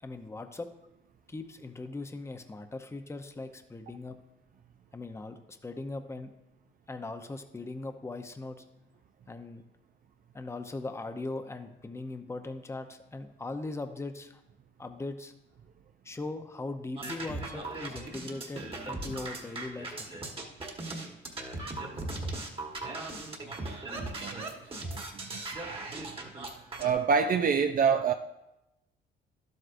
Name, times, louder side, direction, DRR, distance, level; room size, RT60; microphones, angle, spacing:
voice 1, 0.0-0.7 1.3-4.2 4.9-6.4 6.9-8.6 9.3-9.6 10.3-14.4 14.8-15.3 16.0-20.2, left 2 dB, 15° left, 7 dB, 0.7 m, -39 dB
sound 1, 17.0-26.9, right 2 dB, 25° right, 1.4 m, -38 dB
voice 2, 23.5-24.5 24.8-25.4 26.8-28.1, right 6 dB, 45° right, 7 dB, 0.4 m, -28 dB
11.5 x 7.9 x 2.6 m, 0.93 s
cardioid pair, 90°, 20 cm